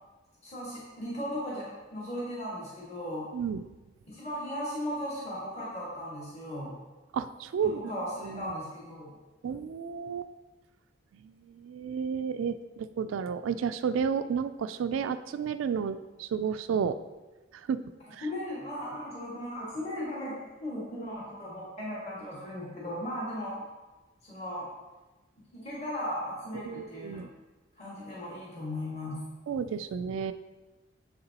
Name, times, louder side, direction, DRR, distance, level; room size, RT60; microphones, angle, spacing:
voice 1, 0.4-3.3 4.1-6.7 7.6-9.1 18.2-23.6 24.2-24.7 25.5-27.2 27.8-29.2, equal, 35° left, -7 dB, 1.8 m, -37 dB
voice 2, 3.3-3.7 7.1-7.9 8.2-8.5 9.4-10.3 11.1-17.0 17.5-17.8 18.1-18.3 26.6-27.3 29.5-30.3, right 6 dB, 85° right, 11 dB, 0.3 m, -32 dB
7.4 x 6.6 x 2.9 m, 1.2 s
head